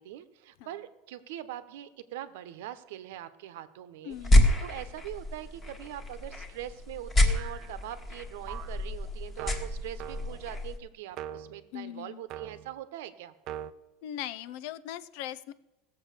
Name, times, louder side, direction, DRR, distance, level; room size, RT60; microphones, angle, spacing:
voice 1, 0.0-13.3, right 12 dB, 80° right, 12 dB, 1.0 m, -42 dB
voice 2, 4.0-4.5 11.7-12.2 14.0-15.5, left 11 dB, 60° left, 17 dB, 0.6 m, -39 dB
sound 1, 4.1-10.8, left 1 dB, 15° left, 1.4 m, -28 dB
sound 2, 7.3-7.8 8.5-8.8 9.4-10.5 11.1-11.6 12.3-12.8 13.5-13.7, right 10 dB, 40° right, 0.6 m, -42 dB
17.0 x 7.3 x 6.7 m, 1.0 s
supercardioid pair, 165°, 0 cm